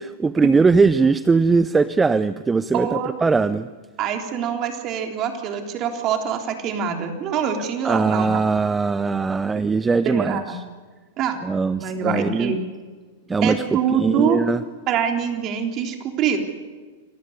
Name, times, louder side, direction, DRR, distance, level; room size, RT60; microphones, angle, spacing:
voice 1, 0.0-3.7 7.8-10.4 11.4-12.6 13.3-13.6 14.0-14.6, right 4 dB, 15° right, 14 dB, 0.7 m, -20 dB
voice 2, 2.7-3.1 4.0-8.4 10.0-10.6 11.2-11.4 11.8-12.6 13.4-14.4 14.9-16.4, right 7 dB, 40° right, 4 dB, 3.6 m, -24 dB
27.5 x 15.0 x 9.9 m, 1.4 s
hypercardioid pair, 105°, 0 cm